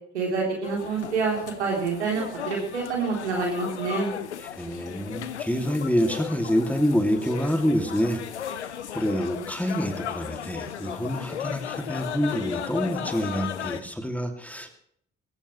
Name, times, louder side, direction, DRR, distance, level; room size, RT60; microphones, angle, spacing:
voice 1, 0.1-4.1, right 4 dB, 85° right, -1 dB, 3.6 m, -27 dB
sound 1, 0.6-13.8, left 9 dB, 90° left, 0.6 m, -35 dB
voice 2, 4.6-14.7, equal, 5° left, 4 dB, 2.6 m, -27 dB
21.5 x 14.5 x 3.2 m, 0.66 s
figure-of-eight pair, 45°, 33 cm